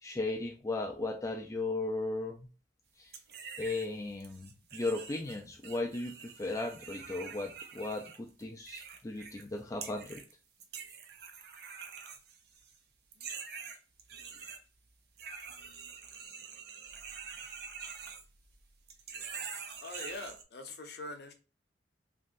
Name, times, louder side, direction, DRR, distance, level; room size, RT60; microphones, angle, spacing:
voice 1, 0.0-2.5 3.0-3.1 3.6-10.2, left 2 dB, 20° left, 2 dB, 0.3 m, -36 dB
sound 1, 3.1-3.9 4.2-9.5 9.8-10.3 10.6-12.7 13.1-14.6 15.2-18.6 18.9-20.4, right 6 dB, 65° right, 0.5 m, -46 dB
voice 2, 19.8-21.3, left 2 dB, 65° left, 6 dB, 0.6 m, -43 dB
2.9 x 2.6 x 2.5 m, 0.34 s
head